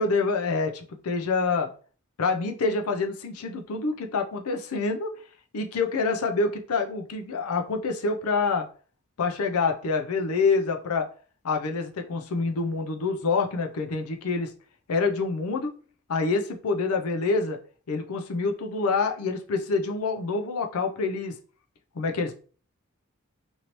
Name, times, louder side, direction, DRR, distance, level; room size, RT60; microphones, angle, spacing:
voice 1, 0.0-1.7 2.2-5.1 5.5-8.7 9.2-11.1 11.4-14.5 14.9-15.7 16.1-17.6 17.9-21.3 22.0-22.3, left 4 dB, 80° left, 4 dB, 0.5 m, -26 dB
2.9 x 2.7 x 2.9 m, 0.40 s
head